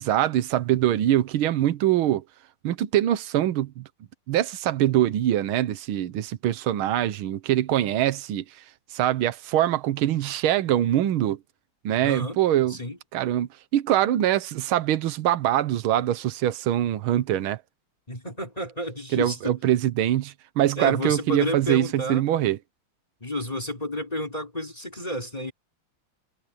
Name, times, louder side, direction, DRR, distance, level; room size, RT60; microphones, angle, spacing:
voice 1, 0.0-2.2 2.6-3.8 4.3-8.4 8.9-11.4 11.8-12.8 13.1-17.6 19.1-22.6, right 12 dB, 75° right, 1.8 m, -23 dB
voice 2, 12.0-12.4 12.7-13.0 18.1-19.6 20.8-22.3 23.2-25.5, left 1 dB, 15° left, 3.9 m, -31 dB
omnidirectional pair, 2.4 m